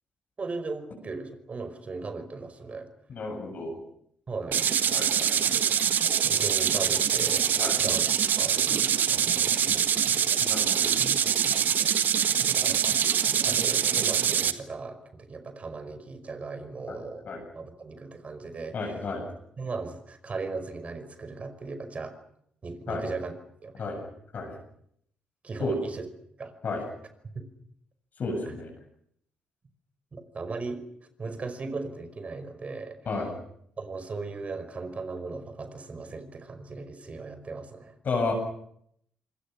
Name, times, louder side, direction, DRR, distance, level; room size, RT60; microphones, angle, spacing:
voice 1, 0.4-2.9 4.3-4.7 6.3-7.5 7.8-8.1 8.4-10.3 12.5-13.0 13.4-18.8 19.6-22.1 22.6-23.3 23.6-23.9 25.4-26.0 26.4-26.5 27.3-27.5 28.5-28.6 30.1-30.9 31.2-33.0 33.8-37.9, right 3 dB, 35° right, 10 dB, 5.3 m, -37 dB
voice 2, 3.1-3.8 4.9-5.6 7.6-7.8 10.4-11.2 16.9-17.4 18.7-19.3 22.9-23.1 23.8-24.1 24.3-24.5 25.6-25.8 26.6-26.8 28.2-28.7 33.1-33.3 38.0-38.3, left 3 dB, 45° left, 1 dB, 7.7 m, -32 dB
sound 1, 4.5-14.5, right 8 dB, 50° right, 1.5 m, -24 dB
26.5 x 26.5 x 6.3 m, 0.71 s
figure-of-eight pair, 40°, 4 cm